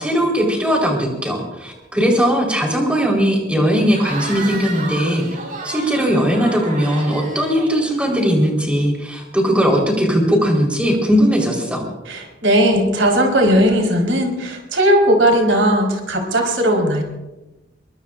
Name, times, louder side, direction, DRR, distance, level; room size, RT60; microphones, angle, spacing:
voice 1, 0.0-5.2 5.6-11.9, equal, 5° right, 0 dB, 4.1 m, -18 dB
Cheering / Crowd, 3.9-8.5, right 2 dB, 40° right, 5.1 m, -32 dB
voice 2, 12.0-17.0, equal, 75° right, 1 dB, 4.5 m, -17 dB
23.5 x 23.0 x 2.6 m, 1.0 s
head